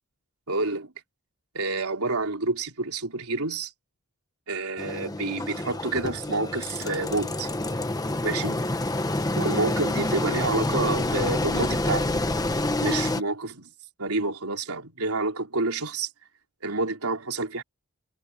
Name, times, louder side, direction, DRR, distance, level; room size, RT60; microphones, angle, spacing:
voice 1, 0.5-0.9 1.5-3.7 4.5-7.5 8.2-8.7 9.4-12.3 12.8-13.7 14.0-16.1 16.6-17.6, right 3 dB, 80° right, 4.0 m, -28 dB
Engine, 4.8-13.2, left 1 dB, 15° left, 1.2 m, -27 dB
head